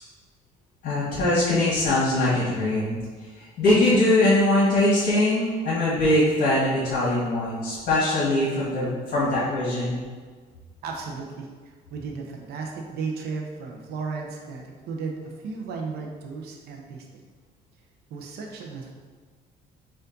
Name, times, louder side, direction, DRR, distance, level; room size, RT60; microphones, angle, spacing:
voice 1, 0.8-3.0 3.6-10.0, left 1 dB, 60° left, -9 dB, 1.4 m, -22 dB
voice 2, 10.8-11.5 11.9-17.1 18.1-18.9, right 4 dB, 70° right, 1 dB, 0.6 m, -34 dB
4.4 x 2.5 x 3.9 m, 1.5 s
cardioid pair, 110°, 17 cm